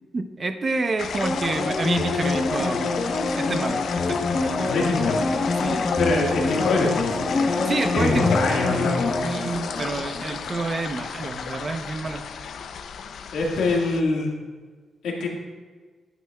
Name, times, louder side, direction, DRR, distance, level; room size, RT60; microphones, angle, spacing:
voice 1, 0.1-2.9 3.4-4.7 5.6-5.8 7.6-8.3 9.2-12.3, right 3 dB, 35° right, 7 dB, 0.7 m, -28 dB
sound 1, 1.0-14.0, left 6 dB, 70° left, 0.5 m, -33 dB
sound 2, 1.2-10.6 11.0-11.1, left 3 dB, 40° left, 0.9 m, -25 dB
voice 2, 4.7-5.2 6.0-7.4 7.9-9.1 13.3-14.3 15.0-15.3, left 3 dB, 90° left, -2 dB, 1.8 m, -24 dB
11.5 x 9.3 x 2.3 m, 1.4 s
cardioid pair, 100°, 0 cm